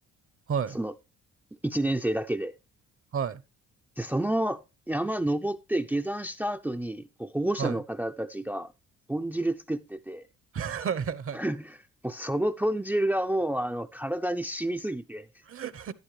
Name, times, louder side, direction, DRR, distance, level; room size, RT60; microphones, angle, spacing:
voice 1, 1.6-2.5 4.0-4.6 4.9-8.7 9.1-10.3 11.3-11.8 12.0-15.3, right 1 dB, 5° right, 0.5 m, -29 dB
voice 2, 10.5-11.4 15.5-15.9, right 7 dB, 45° right, 0.9 m, -31 dB
12.0 x 11.0 x 3.2 m
cardioid pair, 90°, 30 cm